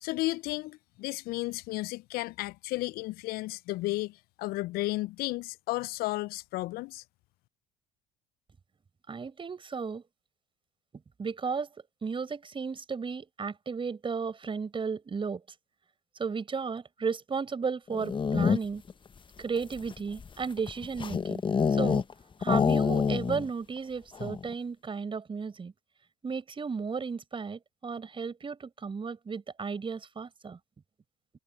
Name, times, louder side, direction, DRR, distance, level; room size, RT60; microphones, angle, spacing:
voice 1, 0.0-7.0, left 19 dB, 60° left, 0.8 m, -33 dB
voice 2, 9.1-10.0 11.2-11.7 12.0-15.4 16.2-18.8 19.4-21.4 21.7-22.0 22.4-25.7 26.2-30.6, right 5 dB, 30° right, 6.3 m, -34 dB
sound 1, 17.9-18.9 19.6-22.1 22.4-23.5 23.8-23.9 24.2-24.5, left 6 dB, 25° left, 1.3 m, -27 dB
hypercardioid pair, 65°, 18 cm